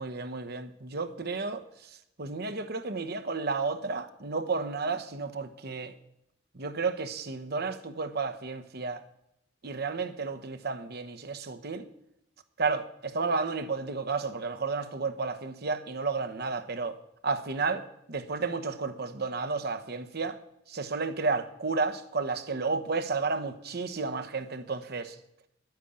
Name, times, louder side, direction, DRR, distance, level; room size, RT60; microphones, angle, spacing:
voice 1, 0.0-5.9 6.5-9.0 9.6-11.9 12.6-17.0 17.2-20.4 20.7-25.2, right 4 dB, 60° right, 1.1 m, -32 dB
11.0 x 9.3 x 8.8 m
head